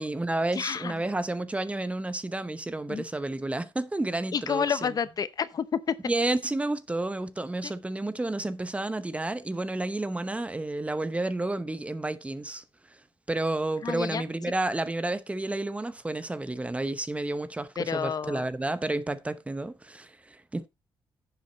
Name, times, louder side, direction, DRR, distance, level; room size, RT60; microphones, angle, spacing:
voice 1, 0.0-4.9 6.1-12.6 13.3-20.7, right 2 dB, 15° right, 0.9 m, -31 dB
voice 2, 0.5-0.9 2.9-3.0 4.3-6.0 7.6-7.7 13.8-14.2 17.8-18.4, left 7 dB, 50° left, 0.7 m, -29 dB
10.0 x 7.5 x 4.0 m
cardioid pair, 110°, 9 cm